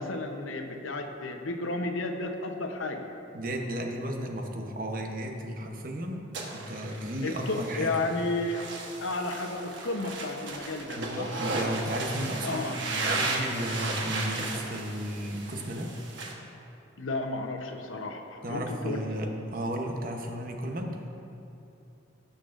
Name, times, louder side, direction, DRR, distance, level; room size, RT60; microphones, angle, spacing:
voice 1, 0.0-3.1 7.2-8.6 9.0-11.3 12.4-12.8 17.0-19.0, left 2 dB, 90° left, 5 dB, 0.8 m, -32 dB
voice 2, 3.3-7.9 10.9-15.9 18.4-21.0, right 1 dB, 45° right, 2 dB, 0.9 m, -34 dB
sound 1, 6.3-16.3, right 2 dB, 70° right, 1.2 m, -35 dB
18.5 x 6.5 x 2.5 m, 2.8 s
head